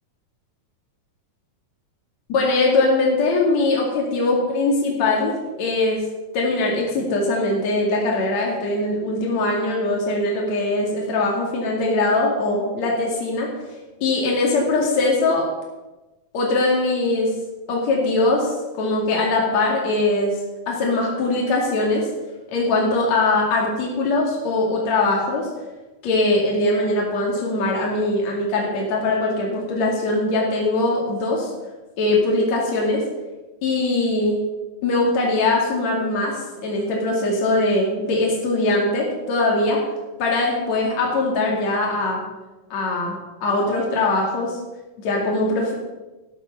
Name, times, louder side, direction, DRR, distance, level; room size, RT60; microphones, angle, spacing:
voice 1, 2.3-6.0 6.3-13.5 14.0-15.5 16.3-17.3 17.7-20.4 20.7-22.1 22.5-25.5 26.0-31.5 32.0-33.0 33.6-34.4 34.8-39.8 40.2-42.2 42.7-44.6 45.0-45.8, left 2 dB, 60° left, -2 dB, 3.6 m, -21 dB
12.0 x 11.0 x 5.7 m, 1.1 s
omnidirectional pair, 3.5 m